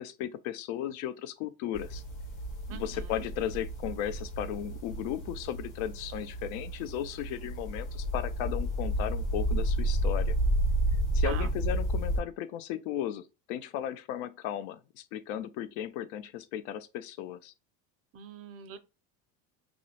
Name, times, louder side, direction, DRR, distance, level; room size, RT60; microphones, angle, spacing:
voice 1, 0.0-2.0 2.7-10.3 11.1-17.5, left 11 dB, 70° left, 0.5 m, -36 dB
sound 1, 1.7-12.2, right 1 dB, 45° left, 1.3 m, -31 dB
voice 2, 2.7-3.2 11.2-11.5 18.1-18.8, right 8 dB, 35° right, 0.4 m, -43 dB
2.5 x 2.1 x 2.8 m
supercardioid pair, 100°, 40 cm